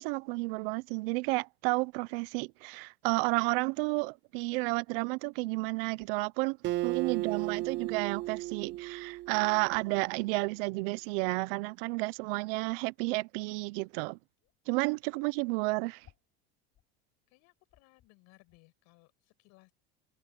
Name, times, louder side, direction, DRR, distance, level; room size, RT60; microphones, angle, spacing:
voice 1, 0.0-6.6 6.8-14.2 14.7-16.1, right 26 dB, 70° right, 0.8 m, -31 dB
sound 1, 5.9-6.3 7.5-7.6 7.8-7.9 8.2-8.5 9.6-10.0 10.6-10.7 10.9-11.6 12.8-13.0 13.7-14.0 14.4-14.6 15.0-15.1 15.4-15.5 16.0-17.0 17.3-17.4 17.6-18.1 18.4-18.6, left 11 dB, 45° left, 7.5 m, -65 dB
Acoustic guitar, 6.6-10.1, right 16 dB, 40° right, 0.4 m, -35 dB
voice 2, 17.3-19.7, left 25 dB, 65° left, 7.5 m, -63 dB
supercardioid pair, 95°, 29 cm